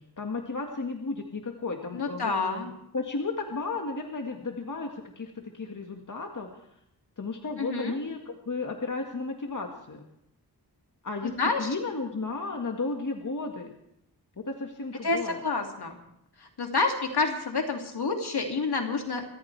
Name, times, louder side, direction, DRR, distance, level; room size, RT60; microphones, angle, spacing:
voice 1, 0.0-2.7 2.9-6.7 7.2-10.0 11.0-13.7 14.4-15.4, left 3 dB, 50° left, 3 dB, 1.8 m, -34 dB
voice 2, 1.9-2.7 7.6-8.0 11.4-11.7 15.0-16.0 16.4-19.2, left 3 dB, 70° left, 3 dB, 2.8 m, -28 dB
26.5 x 14.0 x 3.4 m, 0.76 s
wide cardioid pair, 70°, 40 cm